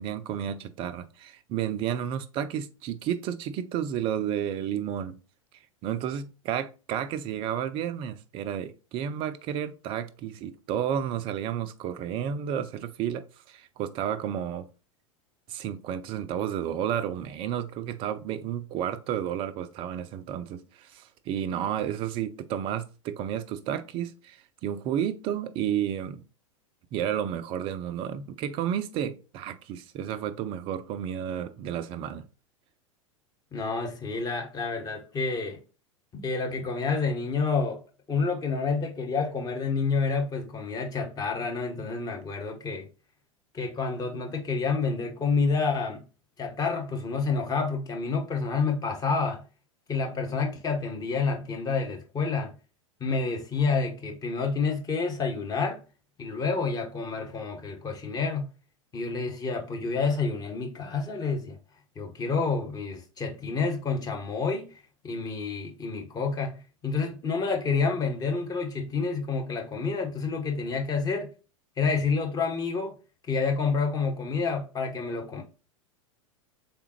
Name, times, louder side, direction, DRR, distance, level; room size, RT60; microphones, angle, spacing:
voice 1, 0.0-5.2 5.8-14.7 15.5-26.2 26.9-32.3, right 9 dB, 30° right, 0.4 m, -31 dB
voice 2, 33.5-35.6 36.1-37.8 38.1-42.9 43.5-46.0 46.4-49.4 49.9-52.5 53.0-55.8 56.2-58.5 58.9-61.6 62.0-64.8 65.0-71.3 71.8-73.0 73.3-75.4, left 4 dB, 20° left, 0.9 m, -29 dB
3.6 x 3.5 x 2.9 m
figure-of-eight pair, 90°, 17 cm